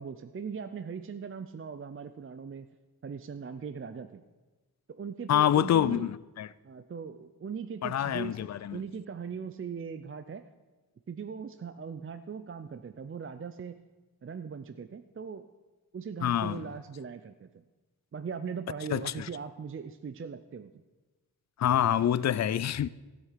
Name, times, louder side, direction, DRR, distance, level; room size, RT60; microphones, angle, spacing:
voice 1, 0.0-2.7 3.0-4.2 4.9-6.1 6.6-10.4 11.1-13.8 14.2-15.5 15.9-17.5 18.1-20.7, right 6 dB, 35° right, 0.5 m, -40 dB
voice 2, 5.3-6.5 7.8-8.8 16.2-16.6 18.9-19.3 21.6-22.9, left 10 dB, 45° left, 0.4 m, -26 dB
13.5 x 8.1 x 5.8 m
cardioid pair, 70°, 38 cm